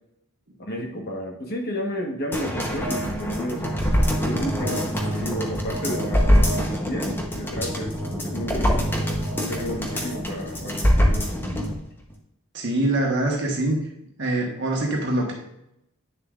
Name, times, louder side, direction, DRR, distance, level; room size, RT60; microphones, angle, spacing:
voice 1, 0.6-3.7 4.2-8.8 9.4-11.3, equal, 45° left, 2 dB, 1.2 m, -32 dB
sound 1, 2.3-11.7 12.1-12.2, equal, 10° left, 0.9 m, -24 dB
voice 2, 12.5-13.8 14.2-15.3, right 1 dB, 55° right, -1 dB, 1.3 m, -24 dB
9.5 x 6.7 x 2.5 m, 0.81 s
head